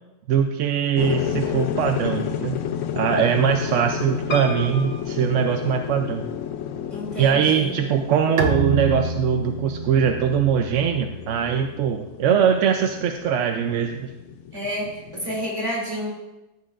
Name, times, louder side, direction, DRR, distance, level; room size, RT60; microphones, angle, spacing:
voice 1, 0.3-2.6 2.9-6.2 7.2-14.1, right 8 dB, 85° right, 6 dB, 0.9 m, -21 dB
sound 1, 1.0-15.5, left 9 dB, 85° left, 0.9 m, -32 dB
Piano, 4.3-6.3 6.9-7.6 7.9-8.0 8.2-8.3, left 2 dB, 60° left, 1.1 m, -36 dB
voice 2, 6.9-7.8 14.5-16.1, equal, 25° right, -5 dB, 2.7 m, -30 dB
Bowed string instrument, 8.4-11.8, right 2 dB, 55° right, 1.0 m, -29 dB
14.5 x 7.7 x 2.5 m, 1.0 s
omnidirectional pair, 1.2 m